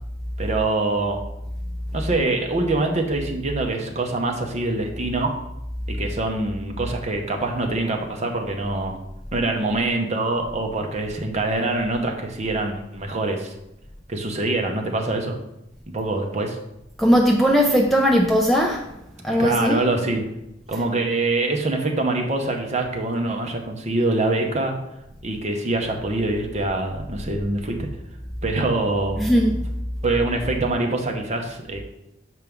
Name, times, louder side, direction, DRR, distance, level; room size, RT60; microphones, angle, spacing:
voice 1, 0.4-1.2 1.9-5.3 5.9-8.9 9.3-13.5 14.1-15.4 15.9-16.6 19.4-20.2 20.7-24.8 25.2-27.9 28.4-29.3 30.0-31.8, right 2 dB, 35° right, 0.8 m, -24 dB
voice 2, 17.0-18.9 19.2-19.9 20.7-20.8 29.2-29.7, equal, ahead, 0.4 m, -18 dB
6.9 x 4.6 x 3.6 m
head